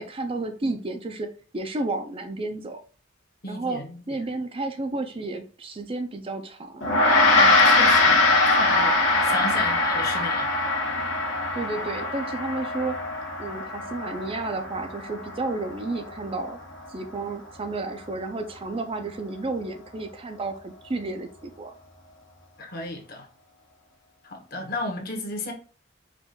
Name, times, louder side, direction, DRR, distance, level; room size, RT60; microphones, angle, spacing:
voice 1, 0.0-2.8 3.5-3.8 4.1-6.9 11.5-13.0 13.4-16.6 16.9-21.7, right 2 dB, 30° right, 0.5 m, -32 dB
voice 2, 3.4-4.2 7.3-10.5 22.6-23.3 24.2-25.5, left 2 dB, 50° left, 1.2 m, -34 dB
Gong, 6.8-16.4, left 2 dB, 75° left, 1.3 m, -22 dB
5.0 x 2.5 x 3.7 m
head